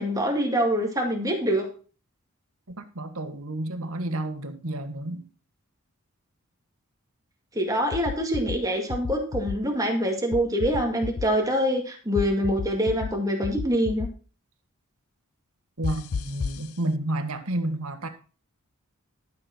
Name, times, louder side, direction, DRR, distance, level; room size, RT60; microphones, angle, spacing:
voice 1, 0.0-1.7 7.6-14.1, equal, 15° right, 2.0 m, -25 dB
voice 2, 2.7-5.3 15.8-18.1, right 1 dB, 75° right, 1.6 m, -30 dB
sound 1, 7.9-8.6 8.9-9.6 10.3-11.3 12.2-13.1 13.4-14.1 15.8-16.6, left 5 dB, 70° left, 0.6 m, -31 dB
12.0 x 7.0 x 4.4 m
head